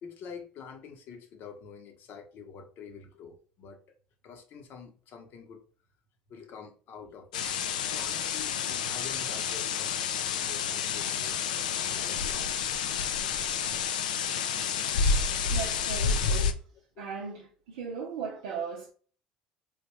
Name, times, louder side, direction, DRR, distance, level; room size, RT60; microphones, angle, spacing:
voice 1, 0.0-4.0 4.2-5.6 6.3-7.5 7.8-12.6 13.2-13.3 15.4-15.7 16.2-16.6, left 6 dB, 55° left, 0.8 m, -47 dB
sound 1, 7.3-16.5, left 6 dB, 80° left, 0.3 m, -29 dB
voice 2, 15.1-16.6 17.0-18.9, right 6 dB, 75° right, 0.5 m, -38 dB
3.5 x 2.2 x 3.0 m
hypercardioid pair, 65°, 4 cm